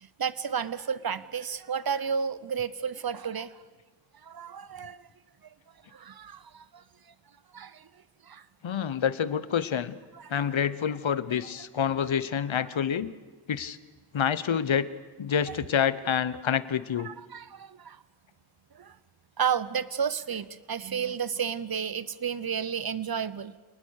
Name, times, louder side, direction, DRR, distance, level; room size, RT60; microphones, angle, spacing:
voice 1, 0.2-3.6 4.2-5.0 5.9-6.8 7.5-7.9 8.2-8.4 10.2-10.3 15.5-15.6 17.0-18.0 18.7-19.0 19.4-23.5, right 7 dB, 45° right, 16 dB, 0.9 m, -32 dB
voice 2, 8.6-10.0 10.3-13.1 13.5-13.8 14.1-14.9 15.2-17.1, left 8 dB, 65° left, 16 dB, 1.0 m, -27 dB
27.5 x 19.5 x 6.5 m, 1.3 s
wide cardioid pair, 100°, 49 cm